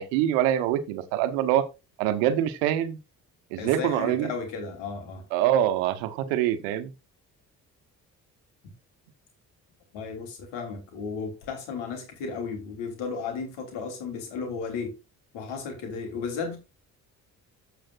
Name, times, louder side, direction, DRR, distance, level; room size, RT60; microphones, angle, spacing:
voice 1, 0.0-1.6 2.0-3.0 3.5-4.3 5.3-6.9, right 11 dB, 70° right, 1.1 m, -25 dB
voice 2, 3.6-5.3 9.9-14.9 15.3-16.6, left 5 dB, 65° left, 3.3 m, -34 dB
15.0 x 5.2 x 2.5 m
figure-of-eight pair, 45°, 47 cm